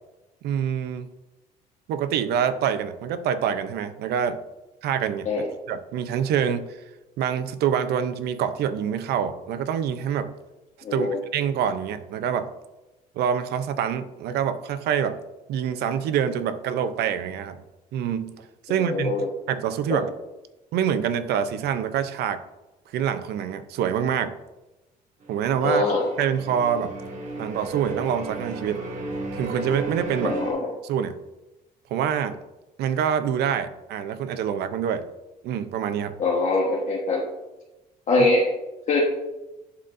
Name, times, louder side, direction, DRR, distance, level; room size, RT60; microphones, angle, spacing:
voice 1, 0.4-1.1 1.9-4.4 4.8-5.3 5.7-6.8 7.2-10.3 10.9-12.5 13.2-15.2 15.5-17.6 17.9-20.1 20.7-22.4 22.9-24.3 25.3-25.9 26.2-27.0 27.4-28.8 29.3-30.4 30.8-31.2 31.9-32.4 32.8-35.1 35.4-36.2 38.2-38.3, right 8 dB, 75° right, 11 dB, 0.6 m, -26 dB
voice 2, 10.8-11.2 18.8-19.3 19.9-20.0 25.6-26.1 30.2-30.7 36.2-37.2 38.1-38.5 38.9-39.0, left 2 dB, 45° left, -4 dB, 1.3 m, -23 dB
sound 1, 25.2-30.5, right 3 dB, 50° right, 1.7 m, -34 dB
11.0 x 4.1 x 2.6 m, 1.0 s
cardioid pair, 110°, 17 cm